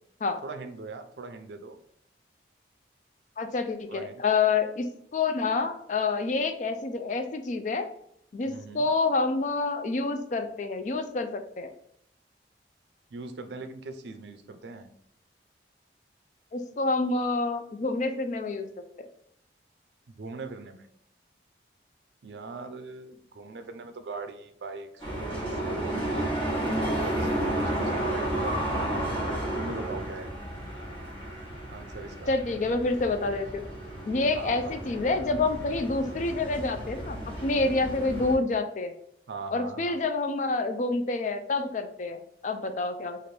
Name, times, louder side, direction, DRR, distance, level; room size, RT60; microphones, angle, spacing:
voice 1, 0.4-1.8 3.9-4.2 8.4-8.9 13.1-14.9 20.2-20.9 22.2-26.3 27.1-30.3 31.7-32.4 34.3-34.8 39.3-40.0, right 3 dB, 70° right, 8 dB, 0.4 m, -41 dB
voice 2, 3.4-7.9 8.3-11.7 16.5-19.1 32.3-33.6 34.1-38.9 39.5-43.2, left 3 dB, 45° left, 8 dB, 0.4 m, -28 dB
sound 1, 25.0-38.3, right 1 dB, 30° left, 1.1 m, -32 dB
3.2 x 2.5 x 4.3 m, 0.72 s
head